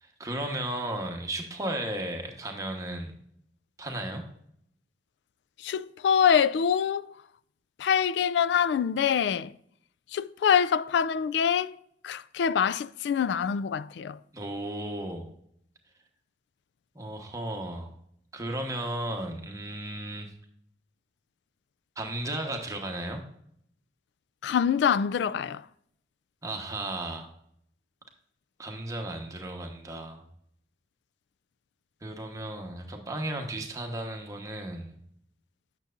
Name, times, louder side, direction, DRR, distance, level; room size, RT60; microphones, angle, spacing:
voice 1, 0.0-3.1 3.8-4.2 14.3-15.3 16.9-17.9 18.3-20.3 22.0-23.2 26.4-27.3 28.6-30.2 32.0-35.0, right 1 dB, 20° right, 1.1 m, -34 dB
voice 2, 5.6-7.1 7.8-9.5 10.1-11.8 12.0-14.2 24.4-25.6, left 7 dB, 70° left, 0.3 m, -25 dB
8.9 x 6.8 x 2.5 m
head